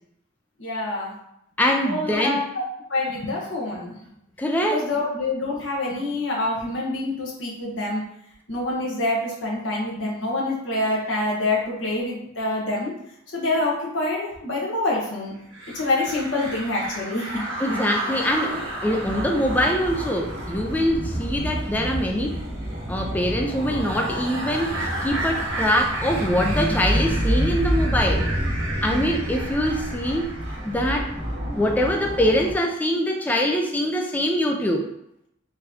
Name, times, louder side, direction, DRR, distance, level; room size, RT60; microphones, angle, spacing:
voice 1, 0.6-1.1 1.9-2.6 2.9-3.9 4.7-8.0 8.5-12.9 13.3-15.3 15.7-17.8 28.9-29.0, left 2 dB, 65° left, -4 dB, 1.2 m, -26 dB
voice 2, 1.6-2.4 4.4-4.9 17.6-22.4 22.9-28.3 28.8-30.3 30.6-31.1 31.5-34.9, equal, 10° left, 2 dB, 0.3 m, -23 dB
sound 1, 15.5-32.5, right 1 dB, 75° right, 1.5 m, -28 dB
3.9 x 3.8 x 2.8 m, 0.78 s
head